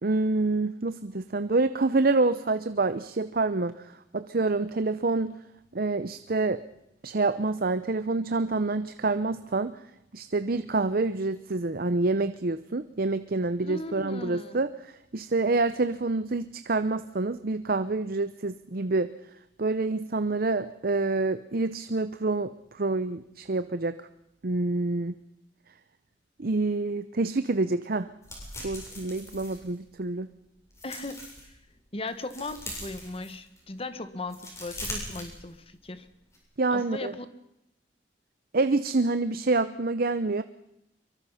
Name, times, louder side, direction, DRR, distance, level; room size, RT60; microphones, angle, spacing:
voice 1, 0.0-5.4 5.7-6.6 7.0-9.7 10.1-14.7 15.1-19.1 19.6-24.0 24.4-25.2 26.4-28.1 28.6-30.3 36.6-37.1 38.5-40.4, right 3 dB, 55° right, 12 dB, 0.8 m, -27 dB
voice 2, 13.6-14.6 30.8-31.2 31.9-36.1 36.7-37.3, left 2 dB, 35° left, 11 dB, 1.6 m, -37 dB
sound 1, 28.2-30.2 30.6-31.5 31.9-33.7 34.1-35.9 36.2-36.4, left 1 dB, 15° left, 7.8 m, -41 dB
24.0 x 23.5 x 5.8 m, 0.85 s
head